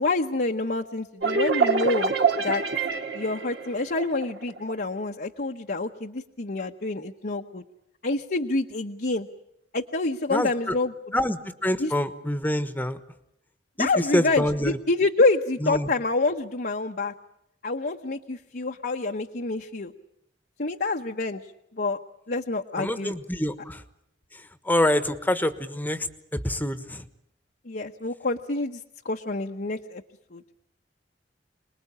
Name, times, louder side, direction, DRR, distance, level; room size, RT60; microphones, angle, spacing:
voice 1, 0.0-2.1 2.4-2.6 3.1-7.6 8.0-9.3 9.7-10.9 11.8-11.9 13.8-17.1 17.6-19.9 20.6-21.4 21.8-22.0 22.3-23.2 27.6-28.8 29.0-30.0 30.3-30.4, left 3 dB, 55° left, 3 dB, 1.0 m, -27 dB
sound 1, 1.2-4.7, right 5 dB, 65° right, 2.1 m, -26 dB
voice 2, 10.3-10.8 11.1-13.0 13.8-14.8 15.6-15.9 22.8-23.8 24.3-27.0, left 1 dB, 10° left, 11 dB, 1.2 m, -26 dB
27.5 x 20.5 x 8.7 m, 0.80 s
head